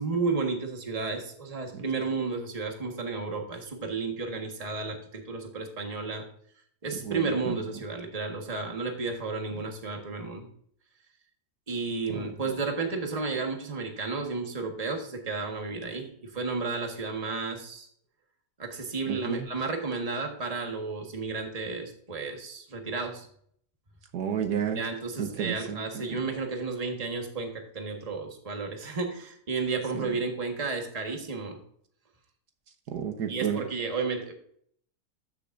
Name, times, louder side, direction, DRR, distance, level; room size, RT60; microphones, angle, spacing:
voice 1, 0.0-6.3 6.8-10.5 11.7-17.9 18.6-23.3 24.7-31.6 33.3-34.3, right 4 dB, 25° right, 3 dB, 1.4 m, -32 dB
voice 2, 7.0-7.6 12.1-12.3 19.1-19.5 24.1-24.8 25.2-26.2 29.9-30.1 32.9-33.6, right 8 dB, 75° right, 6 dB, 1.5 m, -32 dB
13.5 x 6.7 x 2.6 m, 0.64 s
omnidirectional pair, 1.8 m